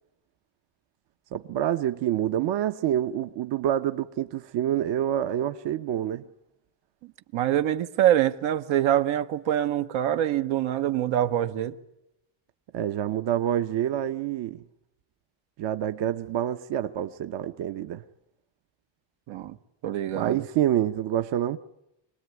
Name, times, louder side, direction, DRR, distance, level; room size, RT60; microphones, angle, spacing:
voice 1, 1.3-6.3 12.7-14.6 15.6-18.0 20.1-21.6, right 11 dB, 65° right, 0.9 m, -27 dB
voice 2, 7.3-11.7 19.3-19.6 19.8-20.4, right 11 dB, 90° right, 1.4 m, -25 dB
26.0 x 19.5 x 9.5 m
cardioid pair, 135°, 46 cm